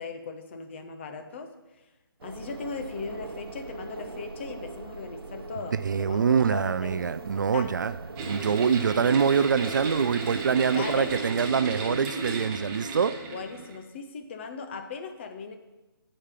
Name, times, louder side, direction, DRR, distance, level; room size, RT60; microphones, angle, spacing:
voice 1, 0.0-1.5 2.2-7.1 7.3-7.8 10.7-11.2 13.2-15.5, left 5 dB, 30° left, 0.7 m, -38 dB
sound 1, 2.2-12.0, right 3 dB, 80° right, 0.8 m, -41 dB
voice 2, 5.7-13.2, right 6 dB, 55° right, 0.4 m, -25 dB
sound 2, 8.2-13.8, right 3 dB, 15° right, 0.8 m, -34 dB
7.9 x 5.1 x 5.7 m
figure-of-eight pair, 155°, 12 cm